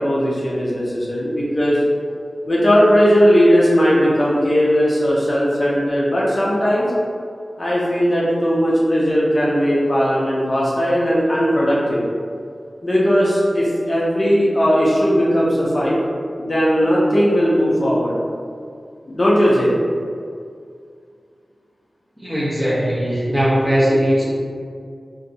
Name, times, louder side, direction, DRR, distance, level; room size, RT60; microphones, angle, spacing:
voice 1, 0.0-1.8 2.5-6.9 7.6-12.0 12.8-16.0 16.4-18.1 19.1-19.8, equal, 40° left, -7 dB, 0.7 m, -17 dB
voice 2, 22.2-24.2, equal, 10° right, -7 dB, 0.9 m, -19 dB
2.6 x 2.2 x 3.9 m, 2.2 s
wide cardioid pair, 75°, 0 cm